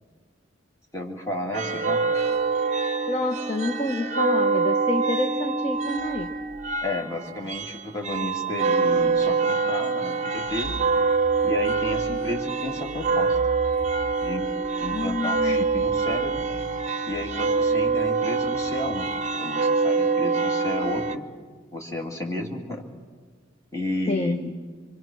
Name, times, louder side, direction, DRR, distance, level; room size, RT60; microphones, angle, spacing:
voice 1, 0.9-2.0 6.8-10.8 11.4-13.4 14.2-14.5 14.8-16.5 17.0-19.1 19.4-21.2 21.7-22.8 23.7-24.6, left 1 dB, 15° left, 1 dB, 2.5 m, -32 dB
sound 1, 1.5-21.2, right 4 dB, 40° right, 0.7 m, -25 dB
voice 2, 3.1-6.3 14.9-15.7 24.1-24.4, left 2 dB, 35° left, 6 dB, 0.8 m, -28 dB
25.5 x 24.0 x 6.1 m, 1.5 s
head